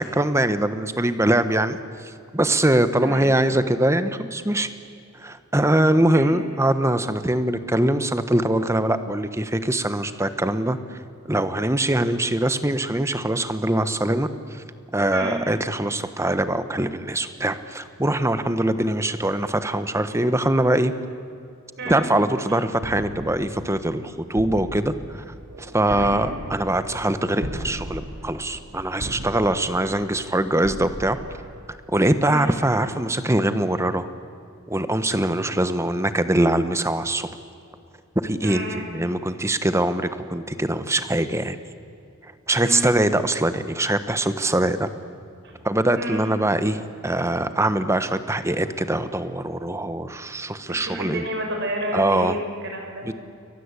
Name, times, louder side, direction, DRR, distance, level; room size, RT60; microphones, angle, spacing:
voice 1, 0.0-4.7 5.1-11.0 11.3-14.6 14.9-20.9 21.9-25.2 25.6-31.2 31.9-34.1 34.7-37.3 38.1-38.6 38.9-41.6 42.5-44.9 45.6-51.3 51.9-52.3 53.0-53.1, right 1 dB, 15° right, 11 dB, 1.2 m, -23 dB
voice 2, 3.0-3.4 6.1-6.4 15.1-15.4 21.8-22.1 25.8-26.3 32.2-32.5 38.4-38.9 42.6-42.9 45.4-45.6 45.9-46.3 50.7-53.1, right 1 dB, 55° right, 2 dB, 6.7 m, -31 dB
sound 1, 22.8-32.1, equal, 75° right, 4.3 m, -37 dB
29.5 x 23.0 x 8.4 m, 2.5 s
head